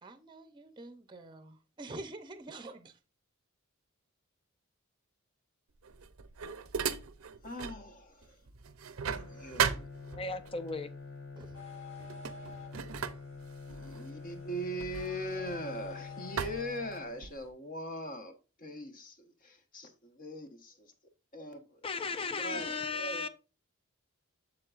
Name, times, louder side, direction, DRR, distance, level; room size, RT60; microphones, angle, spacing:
voice 1, 0.0-3.0 11.4-11.5 22.5-22.7, right 2 dB, 20° right, 0.7 m, -47 dB
sound 1, 5.8-7.9 8.2-10.5 11.4-11.6 12.0-15.8 16.4-17.5, right 7 dB, 85° right, 0.7 m, -37 dB
voice 2, 7.4-8.4 9.1-9.9 13.7-18.3 18.6-20.9 21.3-21.8 22.3-23.2, equal, 40° left, 1.2 m, -41 dB
Bowed string instrument, 9.1-17.4, left 4 dB, 55° left, 1.6 m, -47 dB
voice 3, 10.1-10.9 21.8-23.3, left 4 dB, 25° left, 0.6 m, -35 dB
sound 2, 11.5-17.5, left 3 dB, 85° left, 4.6 m, -51 dB
7.5 x 7.4 x 2.5 m
head